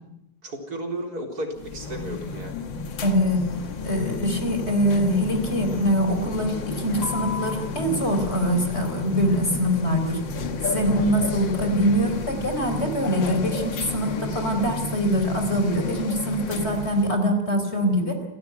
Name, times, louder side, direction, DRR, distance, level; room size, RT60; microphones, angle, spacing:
voice 1, 0.4-2.6 10.9-11.1, right 1 dB, 55° right, 3 dB, 4.5 m, -34 dB
sound 1, 1.6-17.2, left 4 dB, 85° left, 2.3 m, -32 dB
voice 2, 3.0-3.5 3.8-18.2, equal, 35° left, 6 dB, 4.2 m, -24 dB
29.0 x 17.0 x 9.4 m, 0.89 s
omnidirectional pair, 1.9 m